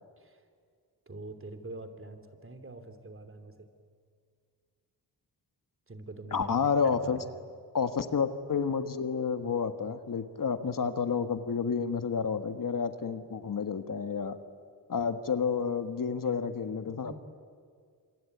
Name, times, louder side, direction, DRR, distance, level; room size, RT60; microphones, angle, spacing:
voice 1, 1.1-3.7 5.9-7.5 16.2-16.5 16.8-17.1, right 2 dB, 30° right, 9 dB, 3.0 m, -45 dB
voice 2, 6.3-7.2 7.7-14.4 14.9-17.1, left 6 dB, 50° left, 9 dB, 1.6 m, -30 dB
27.0 x 23.5 x 9.4 m, 2.1 s
cardioid pair, 70°, 40 cm